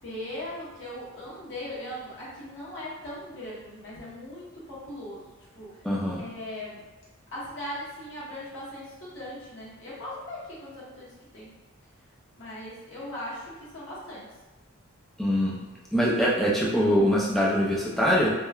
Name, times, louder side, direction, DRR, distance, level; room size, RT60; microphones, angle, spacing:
voice 1, 0.0-5.8 6.2-6.8 7.3-11.5 12.4-14.3, left 1 dB, 60° left, -8 dB, 1.0 m, -39 dB
voice 2, 5.8-6.2 15.2-15.5 15.9-18.3, equal, ahead, -6 dB, 0.4 m, -23 dB
3.0 x 2.1 x 2.3 m, 1.2 s
head